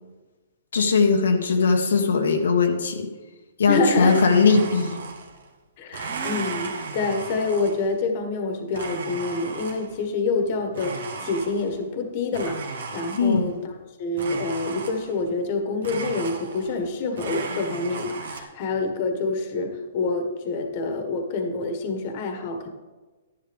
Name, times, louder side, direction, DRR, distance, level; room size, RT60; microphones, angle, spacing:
voice 1, 0.7-3.1 3.6-5.0 13.2-13.4, left 4 dB, 85° left, 2 dB, 1.3 m, -19 dB
voice 2, 3.7-4.2 5.8-13.5 14.0-22.7, left 3 dB, 40° left, 5 dB, 1.4 m, -27 dB
Domestic sounds home sounds, 4.1-5.5 5.9-8.0 8.7-10.0 10.7-11.9 12.3-13.6 14.2-15.3 15.8-16.9 17.2-18.4, right 4 dB, 70° right, 1.6 m, -35 dB
11.5 x 10.5 x 3.5 m, 1.2 s
hypercardioid pair, 150°, 0 cm